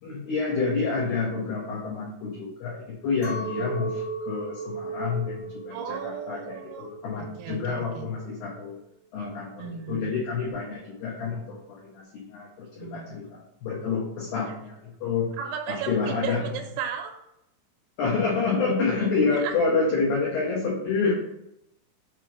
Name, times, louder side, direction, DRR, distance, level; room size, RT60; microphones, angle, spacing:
voice 1, 0.0-2.8 3.0-8.8 9.1-13.2 13.6-15.3 15.7-16.4 18.0-21.1, left 4 dB, 90° left, -4 dB, 2.0 m, -28 dB
Chink clink, 3.2-8.7, right 4 dB, 65° left, 1.7 m, -36 dB
voice 2, 5.7-6.9 7.2-8.1 9.6-10.1 12.8-13.4 15.4-17.1 19.4-19.5, right 8 dB, 85° right, 3 dB, 3.3 m, -35 dB
7.6 x 3.0 x 4.9 m, 0.81 s
omnidirectional pair, 6.0 m